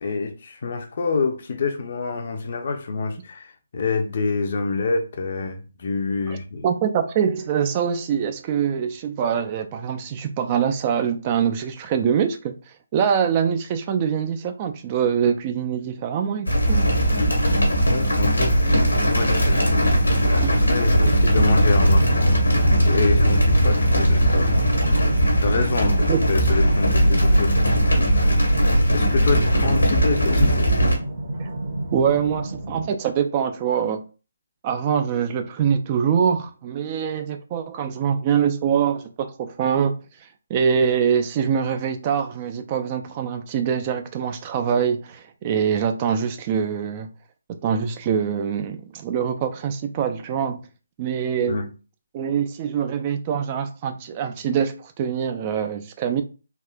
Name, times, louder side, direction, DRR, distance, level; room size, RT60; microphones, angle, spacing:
voice 1, 0.0-6.7 17.2-17.4 17.8-19.7 20.3-22.4 22.8-24.8 25.4-28.3 28.9-30.7 51.5-51.7, left 4 dB, 45° left, 0.5 m, -27 dB
voice 2, 6.6-12.5 12.9-16.9 20.4-20.5 26.1-26.2 31.4-31.5 31.9-34.0 34.6-47.1 47.5-50.6 51.0-51.6 52.1-56.2, right 7 dB, 25° right, 0.3 m, -24 dB
sound 1, 16.5-31.0, equal, 85° left, 1.2 m, -19 dB
sound 2, 21.0-32.9, right 1 dB, 50° right, 1.1 m, -31 dB
3.4 x 2.4 x 2.2 m
figure-of-eight pair, 145°, 0 cm